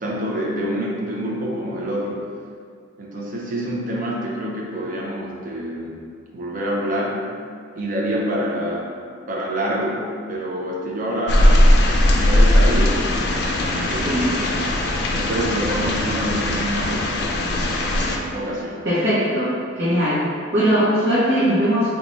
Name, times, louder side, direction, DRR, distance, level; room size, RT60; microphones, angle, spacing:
voice 1, 0.0-2.2 3.0-6.0 6.3-7.3 7.7-8.9 9.3-11.7 12.1-13.0 13.6-14.5 15.1-17.4 18.3-18.9, equal, 45° right, -3 dB, 0.5 m, -26 dB
sound 1, 11.3-18.2, left 1 dB, 55° left, 0.4 m, -19 dB
voice 2, 18.8-20.2 20.5-21.9, equal, 60° right, -12 dB, 0.9 m, -19 dB
4.0 x 2.3 x 3.0 m, 2.2 s
head